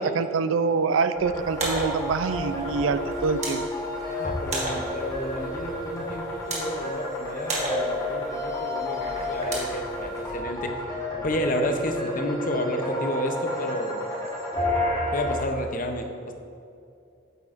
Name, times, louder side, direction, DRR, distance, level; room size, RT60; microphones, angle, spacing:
voice 1, 0.0-3.6, right 4 dB, 75° right, 11 dB, 0.4 m, -25 dB
sound 1, 1.1-15.4, left 1 dB, 20° left, 1.2 m, -31 dB
sound 2, 1.4-10.4, right 1 dB, 35° right, 1.5 m, -35 dB
voice 2, 4.1-10.7 11.2-14.0 15.1-16.1, left 1 dB, 40° left, 5 dB, 0.6 m, -31 dB
9.2 x 8.0 x 2.5 m, 2.5 s
head